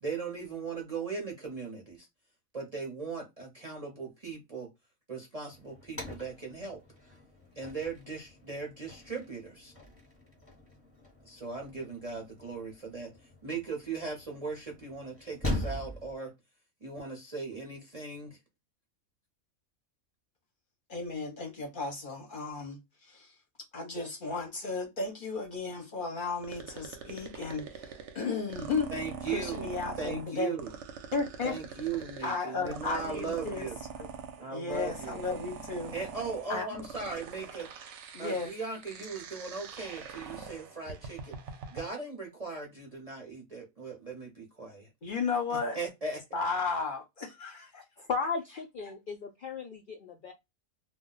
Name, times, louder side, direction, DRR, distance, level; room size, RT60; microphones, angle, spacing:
voice 1, 0.0-2.1 2.5-4.7 5.1-6.8 7.6-9.7 11.2-13.1 13.4-16.3 16.8-18.4 28.9-29.7 30.0-30.7 31.4-33.7 34.4-35.2 35.9-37.7 38.2-41.4 41.7-44.9 45.5-46.2, right 4 dB, 40° right, 0.5 m, -38 dB
sound 1, 5.5-16.2, left 1 dB, 10° left, 0.8 m, -42 dB
voice 2, 20.9-23.3 23.7-28.9 29.3-30.6 31.1-31.6 32.2-33.7 34.0-34.1 34.5-36.0 36.5-37.1 38.1-38.5 45.0-45.8 46.3-47.8, left 4 dB, 50° left, 0.7 m, -34 dB
sound 2, 26.4-41.9, right 6 dB, 65° right, 0.8 m, -44 dB
voice 3, 48.0-50.3, left 5 dB, 80° left, 0.4 m, -35 dB
2.3 x 2.1 x 3.7 m
omnidirectional pair, 1.4 m